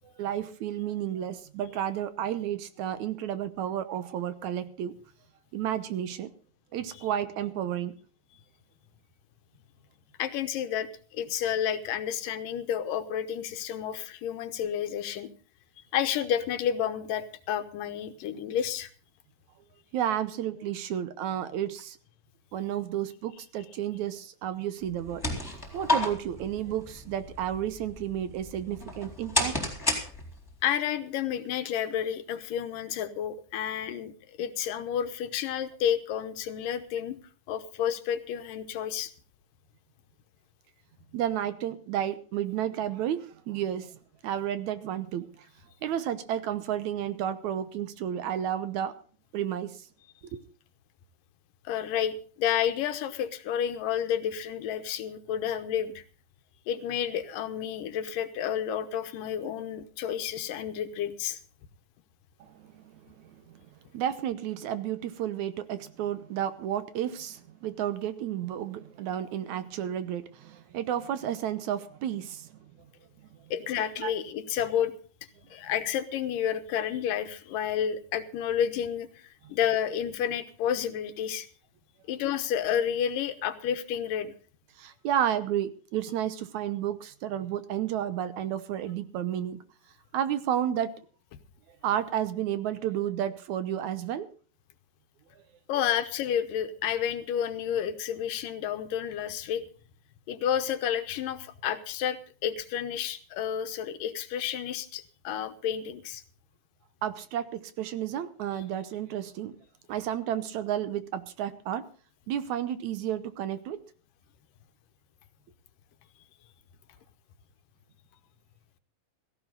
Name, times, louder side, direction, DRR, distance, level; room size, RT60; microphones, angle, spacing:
voice 1, 0.0-4.9 5.5-6.3 6.7-7.9 19.9-22.0 22.5-25.2 25.7-29.6 41.1-45.3 45.8-48.9 49.3-49.8 50.2-50.4 62.4-63.6 63.9-72.6 74.0-74.1 84.8-89.6 90.1-90.9 91.8-94.3 107.0-109.6 109.9-111.9 112.3-113.8, right 10 dB, 70° right, 12 dB, 2.1 m, -32 dB
voice 2, 10.2-15.3 15.9-18.9 30.6-37.2 37.5-39.1 51.7-56.0 56.7-61.4 73.5-74.9 75.5-81.5 82.1-84.3 95.7-99.6 100.3-106.2, left 9 dB, 85° left, 10 dB, 2.8 m, -30 dB
sound 1, 24.9-30.6, left 1 dB, 5° left, 3.5 m, -32 dB
16.5 x 15.5 x 3.9 m, 0.40 s
omnidirectional pair, 3.8 m